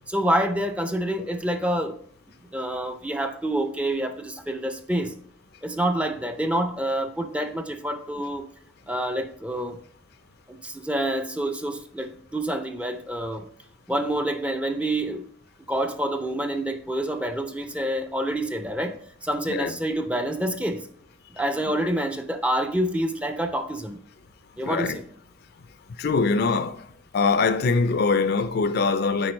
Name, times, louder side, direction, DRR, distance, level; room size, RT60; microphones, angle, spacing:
voice 1, 0.1-2.0 2.5-5.2 5.6-8.5 8.9-9.8 10.5-13.4 13.9-15.2 15.7-20.9 21.4-24.0 24.6-25.0, right 1 dB, 5° right, 0.4 m, -27 dB
voice 2, 24.6-25.0 26.0-26.8 27.1-29.3, left 4 dB, 55° left, 0.4 m, -23 dB
8.7 x 4.5 x 3.1 m
head